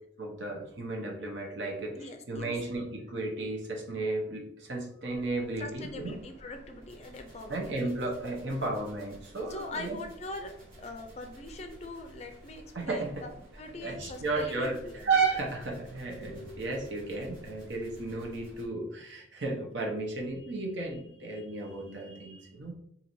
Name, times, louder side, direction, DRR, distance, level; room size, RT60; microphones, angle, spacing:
voice 1, 0.2-6.2 7.5-10.0 12.7-13.2 13.8-14.8 15.0-22.7, right 3 dB, 75° right, 0 dB, 0.9 m, -33 dB
voice 2, 1.9-2.5 5.6-7.9 9.5-10.5 10.8-13.3 13.6-15.1, left 2 dB, 35° left, 6 dB, 0.4 m, -42 dB
sound 1, 5.1-18.7, equal, 50° right, 1.4 m, -53 dB
4.5 x 2.8 x 2.7 m, 0.72 s
head